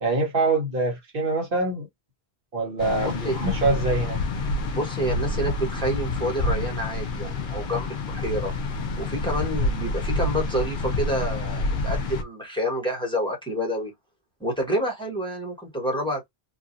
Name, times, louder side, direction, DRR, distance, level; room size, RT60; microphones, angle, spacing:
voice 1, 0.0-1.9 2.5-4.2, right 2 dB, 60° right, 1.3 m, -24 dB
sound 1, 2.8-12.2, left 2 dB, 55° left, 0.8 m, -28 dB
voice 2, 3.0-3.4 4.7-8.5 9.0-13.9 14.4-16.3, equal, 5° left, 1.4 m, -28 dB
2.9 x 2.8 x 2.6 m
omnidirectional pair, 1.1 m